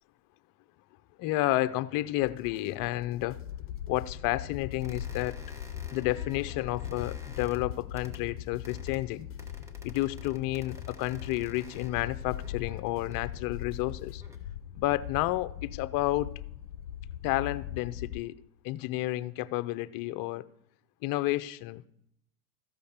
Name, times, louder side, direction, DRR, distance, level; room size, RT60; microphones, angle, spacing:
voice 1, 1.2-3.4 3.9-5.4 5.9-9.3 9.8-14.2 14.7-16.3 17.2-18.3 18.6-20.4 21.0-21.9, left 17 dB, 50° left, 0.7 m, -31 dB
sound 1, 2.2-14.2, left 11 dB, 30° left, 1.4 m, -52 dB
sound 2, 3.3-18.2, left 11 dB, 90° left, 0.5 m, -40 dB
sound 3, 4.8-7.6 8.0-8.2 8.6-9.0 9.4-13.2 14.0-14.4, equal, 5° right, 1.5 m, -52 dB
13.5 x 5.1 x 7.2 m
hypercardioid pair, 100°, 44 cm